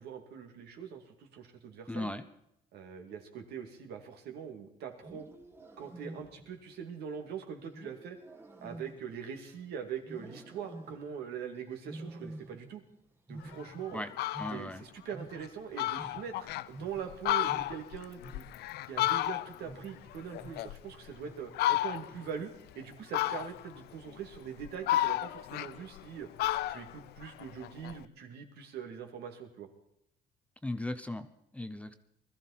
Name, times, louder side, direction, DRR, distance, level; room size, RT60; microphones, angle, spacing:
voice 1, 0.0-2.1 2.7-5.3 5.8-8.2 8.6-12.8 13.3-14.0 14.5-18.4 18.8-26.3 26.7-29.7, right 7 dB, 75° right, 5 dB, 2.3 m, -42 dB
voice 2, 1.9-2.2 13.9-14.1 14.4-14.8 30.6-31.9, left 1 dB, 5° left, 10 dB, 0.8 m, -37 dB
Wild animals, 4.9-6.6 7.7-9.6 10.0-11.2 11.8-12.9 13.2-15.7 15.9-20.8 21.2-21.7 22.1-22.5 23.2-23.7, right 1 dB, 15° right, 1.5 m, -49 dB
Fowl, 13.5-13.6 14.0-14.6 15.1-15.2 15.5-15.6 15.8-16.7 17.1-19.7 20.1-21.1 21.5-22.2 23.1-23.8 24.3-26.1 26.4-28.0, left 15 dB, 70° left, 0.5 m, -32 dB
20.5 x 13.5 x 4.2 m, 0.77 s
cardioid pair, 110°, 17 cm